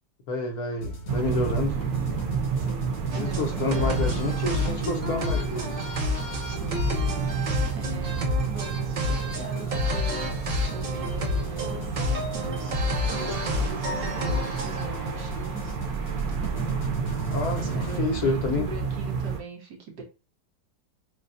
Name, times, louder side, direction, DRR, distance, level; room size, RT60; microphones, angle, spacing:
voice 1, 0.3-1.8 3.1-5.8 17.3-18.7, left 2 dB, 65° left, 1.2 m, -28 dB
sound 1, 0.8-18.0, left 1 dB, 85° left, 2.0 m, -40 dB
sound 2, 1.1-19.4, right 6 dB, 90° right, 1.5 m, -31 dB
voice 2, 2.6-2.9 3.2-4.1 6.4-6.8 7.2-10.4 10.7-16.9 17.2-20.0, right 4 dB, 70° right, 1.8 m, -42 dB
sound 3, 3.1-14.8, left 2 dB, 50° right, 0.5 m, -30 dB
6.4 x 2.3 x 2.6 m
omnidirectional pair, 1.9 m